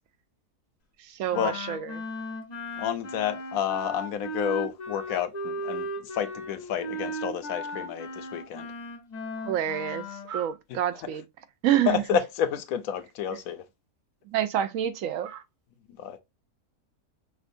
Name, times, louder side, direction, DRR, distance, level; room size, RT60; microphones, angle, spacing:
voice 1, 1.0-2.0 9.5-11.2 11.6-12.0 14.3-15.4, right 11 dB, 65° right, 0.9 m, -28 dB
Wind instrument woodwind instrument, 1.3-10.3, equal, 35° left, 0.7 m, -36 dB
voice 2, 2.8-8.7 11.9-13.6 16.0-16.2, left 8 dB, 70° left, 1.1 m, -30 dB
6.0 x 2.3 x 2.6 m
omnidirectional pair, 1.6 m